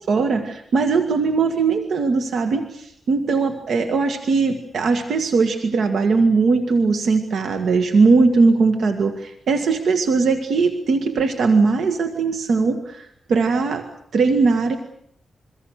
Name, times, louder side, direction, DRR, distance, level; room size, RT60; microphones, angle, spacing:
voice 1, 0.0-13.9 14.1-14.8, right 4 dB, 80° right, 6 dB, 1.9 m, -19 dB
27.0 x 24.0 x 6.7 m, 0.69 s
wide cardioid pair, 115°, 0 cm